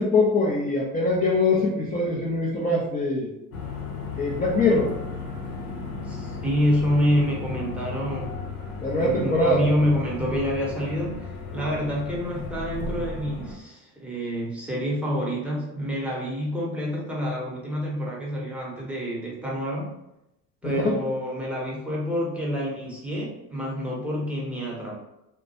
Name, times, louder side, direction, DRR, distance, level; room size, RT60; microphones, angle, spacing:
voice 1, 0.0-3.3 4.2-4.9 8.8-9.6 20.6-20.9, left 2 dB, 20° left, -4 dB, 0.5 m, -23 dB
sound 1, 3.5-13.6, left 4 dB, 90° left, 0.6 m, -35 dB
voice 2, 6.0-8.3 9.0-19.9 20.6-25.0, equal, 5° right, -4 dB, 0.9 m, -27 dB
2.2 x 2.1 x 2.8 m, 0.89 s
hypercardioid pair, 70°, 42 cm